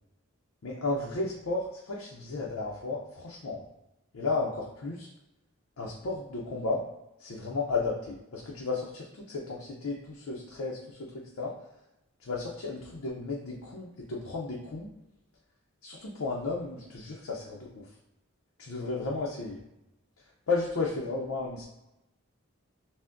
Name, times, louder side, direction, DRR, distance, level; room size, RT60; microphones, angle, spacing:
voice 1, 0.6-3.6 4.1-5.1 5.8-6.8 7.2-11.5 12.3-14.9 15.8-17.8 18.6-19.6 20.5-21.6, left 3 dB, 90° left, -2 dB, 0.6 m, -33 dB
5.6 x 2.1 x 2.5 m, 0.91 s
head